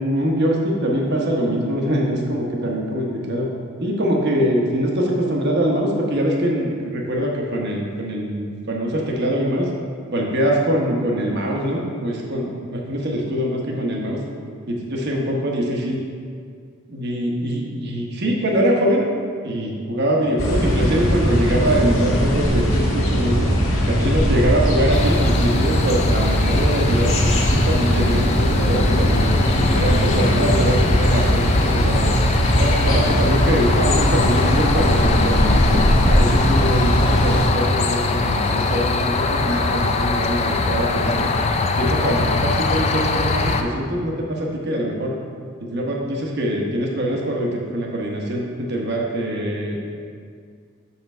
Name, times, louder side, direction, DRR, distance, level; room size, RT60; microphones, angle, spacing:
voice 1, 0.0-3.5 3.8-9.7 10.1-14.2 14.7-16.0 16.9-19.0 19.4-23.5 23.9-29.3 29.7-32.1 32.6-41.3 41.8-45.1 45.6-49.9, equal, 50° right, -1 dB, 1.0 m, -23 dB
sound 1, 20.4-37.4, equal, 65° left, 1.6 m, -19 dB
sound 2, 24.9-43.6, left 3 dB, 30° left, 0.3 m, -23 dB
5.9 x 5.7 x 4.4 m, 2.1 s
head